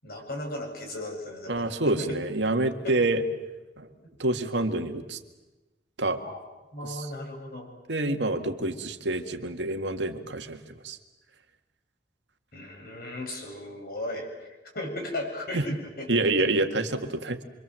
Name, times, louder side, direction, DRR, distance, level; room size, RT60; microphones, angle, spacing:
voice 1, 0.0-2.2 2.8-2.9 6.2-6.4 6.7-7.7 12.5-14.5 14.7-16.1, left 1 dB, 55° left, 1 dB, 7.6 m, -36 dB
voice 2, 1.5-3.2 3.8-3.9 4.2-5.2 6.0-6.2 6.8-7.1 7.9-11.0 15.5-15.6 16.1-17.4, right 2 dB, 75° right, 6 dB, 2.0 m, -27 dB
27.5 x 25.0 x 7.7 m, 1.1 s
head